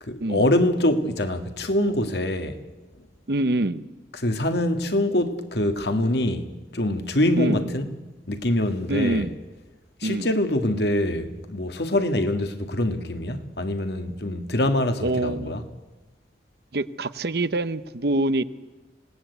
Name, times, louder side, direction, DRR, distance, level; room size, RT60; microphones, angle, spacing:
voice 1, 0.0-2.6 4.1-7.9 8.3-9.3 10.0-15.6, left 1 dB, 65° left, 1.9 m, -24 dB
voice 2, 3.3-3.9 7.4-7.7 8.9-9.4 10.0-10.3 15.0-15.6 16.7-18.4, right 2 dB, 60° right, 0.9 m, -25 dB
26.0 x 18.5 x 8.1 m
head